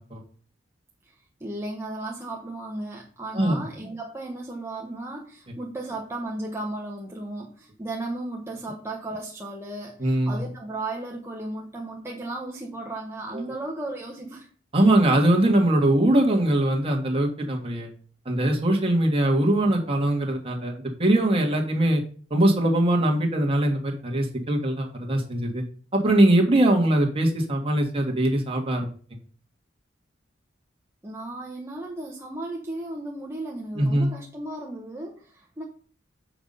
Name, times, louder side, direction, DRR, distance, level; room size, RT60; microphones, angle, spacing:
voice 1, 1.4-14.5 31.0-35.6, right 2 dB, 15° right, -2 dB, 1.0 m, -35 dB
voice 2, 10.0-10.4 13.3-13.4 14.7-17.9 18.3-20.7 21.0-22.0 22.3-25.6 25.9-28.9 33.7-34.1, right 1 dB, 30° right, 0 dB, 1.7 m, -21 dB
7.1 x 5.9 x 5.4 m, 0.44 s
head